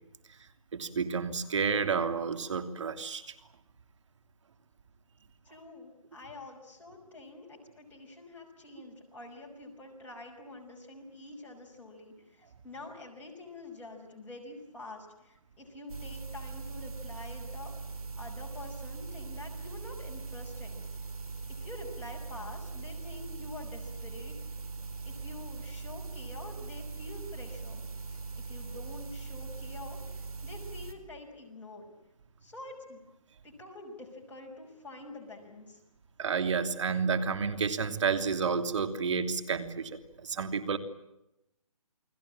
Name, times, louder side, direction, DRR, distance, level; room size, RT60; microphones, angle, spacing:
voice 1, 0.7-3.2 28.7-28.8 36.2-39.9 40.2-40.8, right 5 dB, 55° right, 8 dB, 3.1 m, -30 dB
voice 2, 5.4-17.8 18.2-20.8 21.5-24.3 25.0-27.8 28.4-31.9 32.4-33.0 33.4-35.8, left 2 dB, 10° left, -1 dB, 5.7 m, -47 dB
sound 1, 15.9-30.9, right 4 dB, 75° right, 4.5 m, -41 dB
30.0 x 21.0 x 8.8 m, 0.88 s
hypercardioid pair, 155°, 19 cm